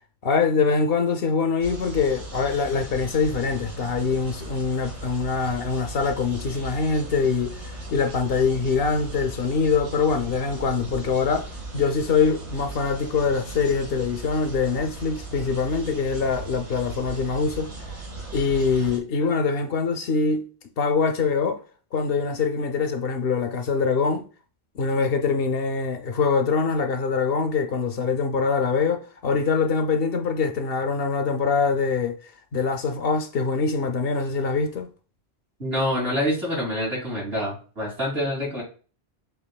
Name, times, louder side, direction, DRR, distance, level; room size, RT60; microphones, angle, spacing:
voice 1, 0.2-7.6 7.9-11.5 11.7-17.7 18.3-20.5 20.8-21.6 21.9-24.2 24.8-34.9, left 5 dB, 65° left, 0.8 m, -24 dB
sound 1, 1.6-19.0, right 2 dB, 85° right, 1.5 m, -38 dB
voice 2, 35.6-38.6, equal, 65° right, 2.9 m, -26 dB
7.7 x 2.6 x 2.2 m
omnidirectional pair, 1.1 m